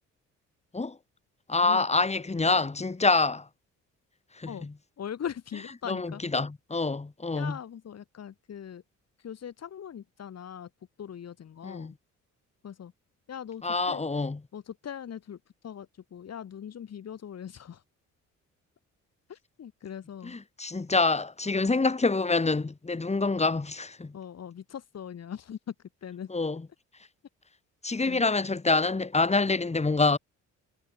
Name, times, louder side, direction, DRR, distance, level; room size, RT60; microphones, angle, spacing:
voice 1, 1.5-3.5 4.4-4.7 5.9-7.6 11.6-11.9 13.6-14.4 20.2-24.1 26.3-26.6 27.8-30.2, left 3 dB, 20° left, 5.6 m, -26 dB
voice 2, 5.0-6.2 7.3-8.8 9.2-10.7 11.0-11.9 12.6-12.9 13.3-14.1 14.5-15.4 15.6-17.8 19.3-20.4 24.1-25.7 26.0-26.3 28.0-28.2, left 8 dB, 55° left, 4.8 m, -40 dB
cardioid pair, 90°, 30 cm